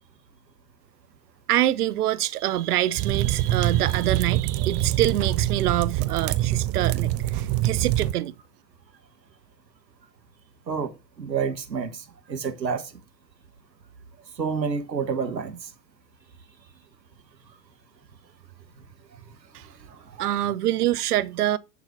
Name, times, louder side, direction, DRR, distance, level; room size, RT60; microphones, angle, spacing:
voice 1, 1.5-8.3 19.5-19.7 20.2-21.6, right 13 dB, 65° right, 0.9 m, -25 dB
sound 1, 3.0-8.1, right 14 dB, 30° right, 0.6 m, -25 dB
voice 2, 10.7-12.9 14.3-15.7 19.1-19.2 19.6-20.2, right 6 dB, 85° right, 1.5 m, -30 dB
10.0 x 4.0 x 6.0 m
figure-of-eight pair, 95°, 50 cm